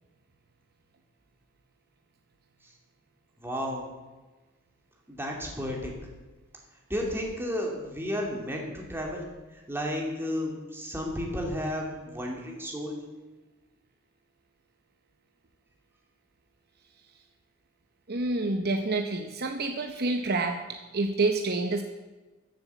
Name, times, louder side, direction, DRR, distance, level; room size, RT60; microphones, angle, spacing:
voice 1, 3.4-3.8 5.1-6.0 6.9-9.3 9.5-13.0, equal, 10° right, 0 dB, 2.6 m, -32 dB
voice 2, 18.1-21.8, right 3 dB, 50° right, 5 dB, 0.9 m, -28 dB
14.5 x 7.9 x 7.0 m, 1.2 s
head